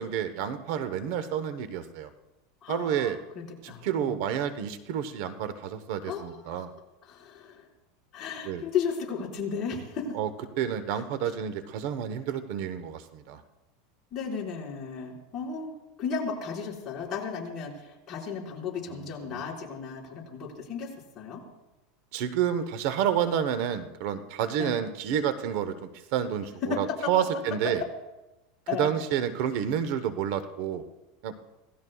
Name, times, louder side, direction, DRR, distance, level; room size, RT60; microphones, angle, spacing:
voice 1, 0.0-2.1 2.7-3.2 3.6-6.7 8.4-8.6 10.1-10.3 10.6-13.4 18.9-19.4 22.1-27.8 28.8-30.8 31.2-31.3, right 9 dB, 60° right, 11 dB, 1.0 m, -29 dB
voice 2, 2.6-4.2 6.1-6.7 7.0-7.7 8.1-10.2 14.1-15.7 16.0-20.9 21.1-21.4 24.6-24.7 26.7-27.1 28.7-28.9, left 6 dB, 30° left, -3 dB, 5.0 m, -34 dB
26.5 x 18.0 x 2.4 m, 1.0 s
supercardioid pair, 140°, 0 cm